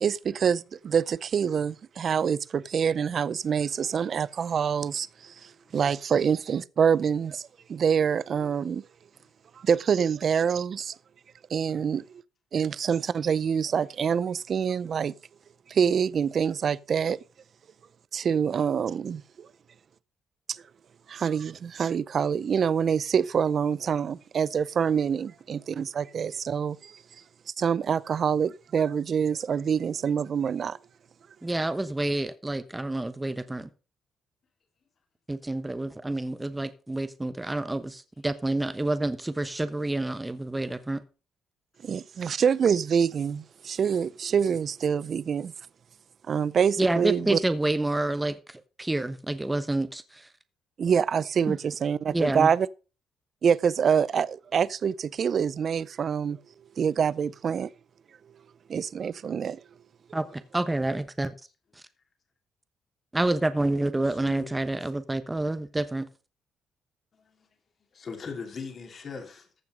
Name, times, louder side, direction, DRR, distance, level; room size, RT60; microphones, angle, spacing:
voice 1, 0.0-8.8 9.6-10.9 11.5-12.0 12.5-15.1 15.7-17.2 18.1-19.5 20.5-20.6 21.1-27.0 27.6-30.8 41.8-45.5 46.3-47.4 50.8-52.7 53.4-56.4 56.8-57.7 58.7-59.6, right 7 dB, 50° right, 0.5 m, -26 dB
voice 2, 11.7-12.0 64.0-64.5 67.1-67.5 67.9-69.5, left 5 dB, 45° left, 3.0 m, -40 dB
voice 3, 31.4-33.7 35.3-41.0 46.8-50.3 51.5-51.6 52.1-52.5 60.1-61.3 63.1-66.1, right 2 dB, 15° right, 1.1 m, -28 dB
14.5 x 5.9 x 5.2 m
cardioid pair, 90°, 0 cm